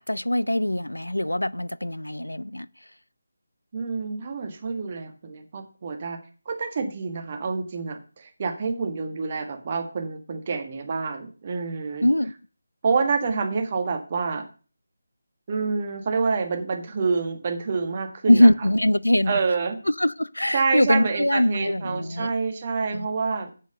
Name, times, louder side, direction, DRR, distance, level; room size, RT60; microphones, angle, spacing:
voice 1, 0.0-2.7 12.0-12.3 18.3-19.4 19.9-22.3 22.9-23.1, left 1 dB, 90° left, 0.4 m, -22 dB
voice 2, 3.7-6.2 6.4-12.1 12.8-14.4 15.5-18.5 19.3-19.8 20.5-23.5, right 4 dB, 35° right, 1.7 m, -27 dB
8.1 x 7.2 x 6.6 m
figure-of-eight pair, 160°, 0 cm